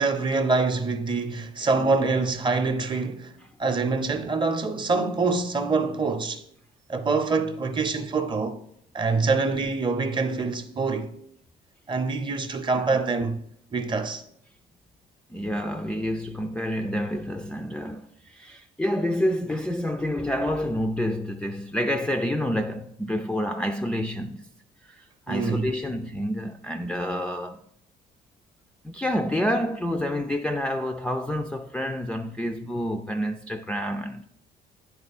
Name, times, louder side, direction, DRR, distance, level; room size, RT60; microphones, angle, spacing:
voice 1, 0.0-6.4 6.9-8.6 8.9-11.2 11.9-13.4 13.7-14.2 25.3-25.7, right 4 dB, 30° right, 0.7 m, -25 dB
voice 2, 15.3-24.4 24.8-27.6 28.8-34.2, equal, 5° left, 0.4 m, -28 dB
9.0 x 4.3 x 4.1 m
cardioid pair, 110°, 17 cm